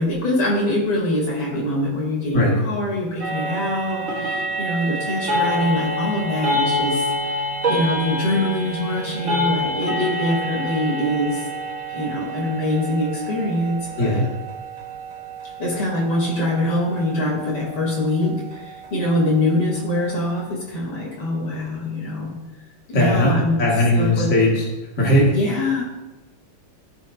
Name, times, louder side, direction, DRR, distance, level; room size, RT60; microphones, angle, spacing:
voice 1, 0.0-11.4 11.9-14.2 15.6-22.3 22.9-23.6 24.0-24.3 25.3-25.8, left 1 dB, 85° left, -4 dB, 4.2 m, -24 dB
sound 1, 3.2-20.4, equal, 40° right, 1.7 m, -28 dB
voice 2, 22.9-24.6 25.0-25.3, left 1 dB, 35° left, -4 dB, 2.4 m, -18 dB
15.0 x 8.2 x 2.8 m, 1.1 s
omnidirectional pair, 2.4 m